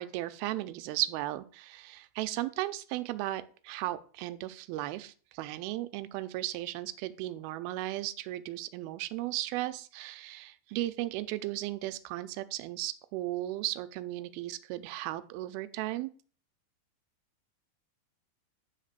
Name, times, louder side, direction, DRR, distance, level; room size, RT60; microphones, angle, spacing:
voice 1, 0.0-16.1, right 16 dB, 85° right, 11 dB, 2.5 m, -36 dB
10.0 x 3.9 x 6.6 m, 0.42 s
omnidirectional pair, 4.3 m